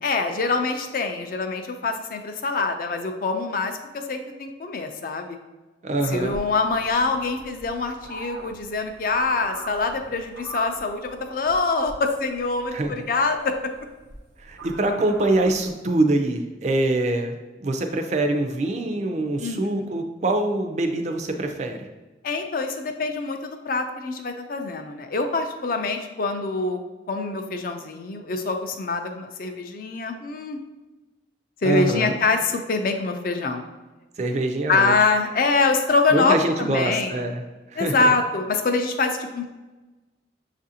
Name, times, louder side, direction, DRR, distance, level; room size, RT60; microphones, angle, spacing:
voice 1, 0.0-5.4 6.1-13.5 19.4-19.9 22.2-26.8 27.1-30.6 31.6-33.6 34.7-37.2 37.8-39.5, left 3 dB, 50° left, 6 dB, 0.4 m, -25 dB
voice 2, 5.8-6.4 12.7-13.0 14.4-21.9 31.6-32.2 34.2-34.9 36.1-37.4 37.7-38.1, right 2 dB, 40° right, 5 dB, 0.4 m, -24 dB
sound 1, 6.0-15.7, right 3 dB, 90° right, 0.7 m, -41 dB
6.1 x 2.5 x 2.7 m, 1.2 s
head